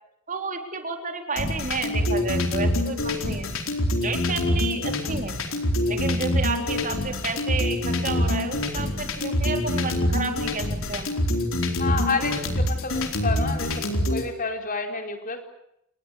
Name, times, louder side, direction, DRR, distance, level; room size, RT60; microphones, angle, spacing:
voice 1, 0.3-3.5 4.0-5.4 5.9-11.1, right 3 dB, 40° right, 5 dB, 3.9 m, -31 dB
sound 1, 1.4-14.2, left 1 dB, 70° left, 4.4 m, -25 dB
voice 2, 11.8-15.4, left 4 dB, 40° left, 5 dB, 4.4 m, -30 dB
28.5 x 21.0 x 8.3 m, 0.79 s
head